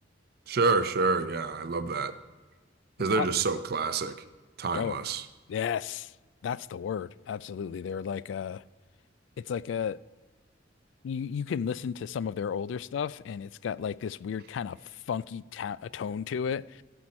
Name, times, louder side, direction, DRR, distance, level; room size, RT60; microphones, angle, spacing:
voice 1, 0.5-2.2 3.0-4.2 4.6-5.2, right 4 dB, 55° right, 0.6 m, -27 dB
voice 2, 5.5-6.1 6.4-8.6 9.4-10.0 11.0-16.8, left 7 dB, 75° left, 0.3 m, -33 dB
16.0 x 6.3 x 4.2 m
head